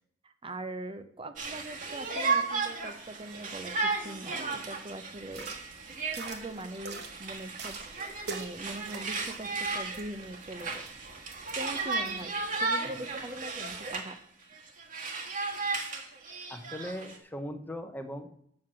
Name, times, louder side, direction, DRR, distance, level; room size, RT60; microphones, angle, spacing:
voice 1, 0.2-5.5 6.0-10.8 11.5-14.2, right 1 dB, 30° right, 9 dB, 0.7 m, -42 dB
Conversation, 1.4-14.2 14.5-17.2, right 4 dB, 45° right, 1.5 m, -35 dB
sound 1, 5.3-12.2, right 4 dB, 60° right, 1.5 m, -46 dB
voice 2, 16.5-18.3, equal, 10° left, 7 dB, 0.7 m, -39 dB
7.6 x 6.4 x 7.4 m, 0.67 s
head